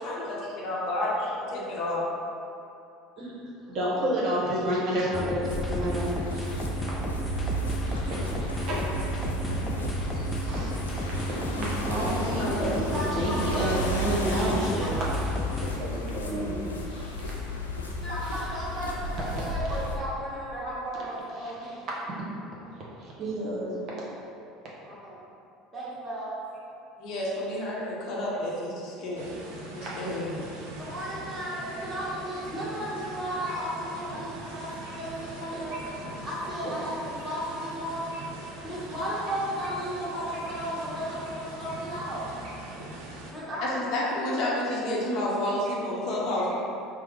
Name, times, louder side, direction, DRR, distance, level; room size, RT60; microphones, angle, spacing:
voice 1, 0.0-2.1 12.0-12.1 12.4-12.7 27.0-29.3 29.7-30.4 43.6-46.5, left 1 dB, 55° left, -5 dB, 0.7 m, -30 dB
voice 2, 3.6-7.0 7.8-8.8 9.8-10.7 11.0-15.2 15.5-17.3 18.2-18.4 19.3-19.5 21.4-21.5 23.2-23.7 34.8-35.0 35.5-35.8 38.1-38.3 40.5-40.6, right 1 dB, 50° right, -6 dB, 0.9 m, -31 dB
sound 1, 5.1-15.7, left 2 dB, 15° left, 0.5 m, -33 dB
sound 2, 5.4-20.0, right 1 dB, 85° left, 0.3 m, -33 dB
voice 3, 12.5-14.3 14.8-14.9 18.0-21.8 24.9-25.2 25.7-26.4 30.8-34.7 34.9-35.7 36.2-38.1 38.6-42.3 43.3-43.8, equal, 15° right, -9 dB, 1.4 m, -34 dB
sound 3, 29.1-43.3, right 1 dB, 70° right, 0.5 m, -42 dB
4.7 x 2.0 x 3.1 m, 2.6 s
figure-of-eight pair, 65°, 0 cm